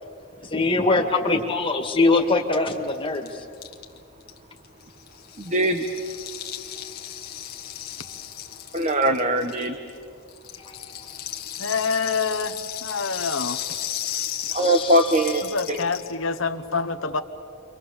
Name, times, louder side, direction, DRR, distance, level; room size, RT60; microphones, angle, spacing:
voice 1, 0.4-3.5 10.6-11.1 14.4-15.2, left 3 dB, 25° left, 3 dB, 2.0 m, -23 dB
Rattle (instrument), 2.3-2.4 2.5-2.6 2.8-10.0 10.3-16.1, left 11 dB, 45° left, 1.4 m, -35 dB
voice 2, 5.4-5.8 8.7-9.8 14.5-15.9, right 1 dB, 35° right, 7 dB, 1.0 m, -21 dB
voice 3, 11.6-13.6 15.4-17.2, left 4 dB, 65° left, 7 dB, 1.2 m, -27 dB
29.0 x 24.5 x 7.1 m, 2.3 s
head